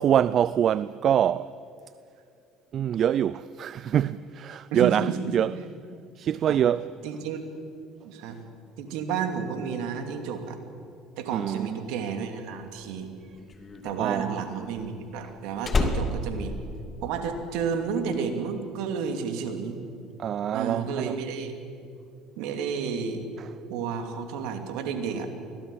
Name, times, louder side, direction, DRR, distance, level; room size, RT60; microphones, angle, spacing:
voice 1, 0.0-1.5 2.7-5.5 6.2-6.9 11.3-11.8 14.0-14.4 20.2-21.2, right 9 dB, 50° right, 0.4 m, -25 dB
voice 2, 4.7-5.2 6.5-6.6 7.0-7.4 8.0-8.4 8.8-10.6 11.2-13.1 13.8-16.5 17.0-19.8 20.5-21.6 22.4-23.3 23.7-25.3, right 6 dB, 70° right, 2.7 m, -31 dB
Slam, 12.7-17.5 17.7-18.2, left 3 dB, 30° left, 2.8 m, -30 dB
23.5 x 17.0 x 8.6 m
hypercardioid pair, 65°, 0 cm